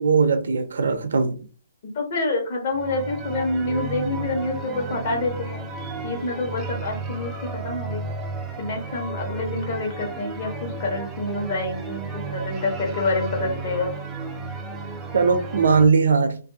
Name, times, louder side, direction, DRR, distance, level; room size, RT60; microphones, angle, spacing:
voice 1, 0.0-1.4 15.1-16.4, right 5 dB, 80° right, 0.6 m, -19 dB
voice 2, 1.9-5.6 6.0-8.0 8.6-13.9, left 2 dB, 45° left, 1.1 m, -27 dB
sound 1, 2.7-15.9, right 3 dB, 15° right, 0.3 m, -33 dB
2.5 x 2.3 x 2.7 m
hypercardioid pair, 160°, 0 cm